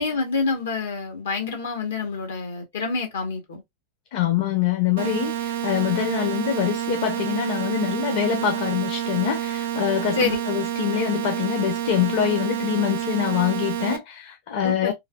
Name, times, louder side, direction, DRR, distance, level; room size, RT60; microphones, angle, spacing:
voice 1, 0.0-3.6 10.2-10.4 14.6-14.9, left 4 dB, 90° left, 1.0 m, -27 dB
voice 2, 4.1-14.9, left 10 dB, 65° left, 0.7 m, -24 dB
sound 1, 5.0-14.0, right 11 dB, 75° right, 0.5 m, -28 dB
3.2 x 2.0 x 2.2 m
hypercardioid pair, 120°, 0 cm